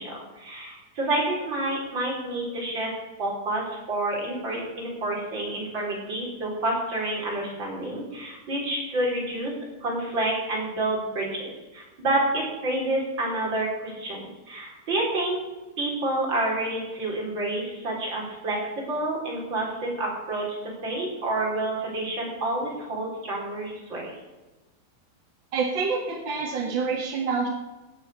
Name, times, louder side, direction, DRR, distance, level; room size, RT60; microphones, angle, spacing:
voice 1, 0.0-2.9 3.2-9.5 9.8-15.4 15.8-20.6 20.8-24.1, right 2 dB, 30° right, -3 dB, 4.7 m, -29 dB
voice 2, 25.5-27.5, right 5 dB, 55° right, 1 dB, 1.3 m, -27 dB
17.5 x 7.1 x 6.7 m, 1.1 s
omnidirectional pair, 4.6 m